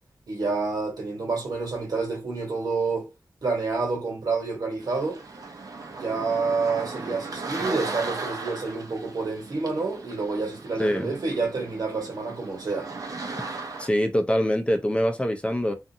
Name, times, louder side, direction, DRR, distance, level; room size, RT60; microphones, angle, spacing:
voice 1, 0.3-3.1 3.4-5.2 5.9-12.9, right 4 dB, 85° right, 1.2 m, -28 dB
sound 1, 4.8-13.9, right 3 dB, 70° right, 0.6 m, -37 dB
voice 2, 10.8-11.1 13.8-15.7, equal, 15° left, 0.5 m, -24 dB
2.6 x 2.4 x 2.6 m
wide cardioid pair, 80°, 6 cm